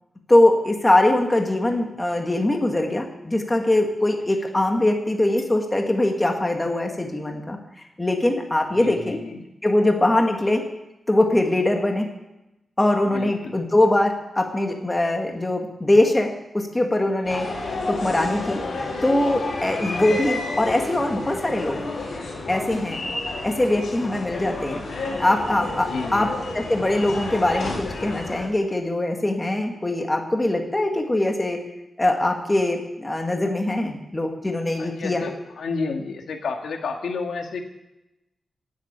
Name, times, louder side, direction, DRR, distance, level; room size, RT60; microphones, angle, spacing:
voice 1, 0.3-9.2 9.6-10.6 11.1-12.1 12.8-18.6 19.0-21.8 22.5-23.0 23.4-24.9 25.2-26.3 26.5-31.6 32.0-35.2, left 1 dB, 15° left, 3 dB, 1.7 m, -22 dB
voice 2, 8.8-9.4 13.1-13.6 25.9-26.4 34.8-37.6, left 4 dB, 90° left, 3 dB, 2.0 m, -31 dB
sound 1, 17.2-28.5, left 3 dB, 70° left, 6.8 m, -31 dB
sound 2, 17.5-25.9, left 2 dB, 30° left, 6.5 m, -45 dB
16.5 x 7.5 x 8.9 m, 0.94 s
wide cardioid pair, 165°, 0 cm